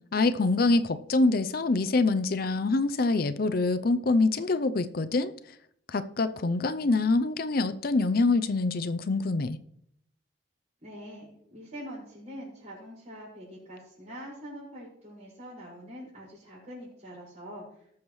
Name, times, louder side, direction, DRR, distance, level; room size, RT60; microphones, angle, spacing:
voice 1, 0.1-5.3 5.9-9.6, left 3 dB, 50° left, 11 dB, 0.5 m, -25 dB
voice 2, 10.8-17.6, equal, 40° right, -9 dB, 5.5 m, -44 dB
19.5 x 7.2 x 3.2 m, 0.70 s
head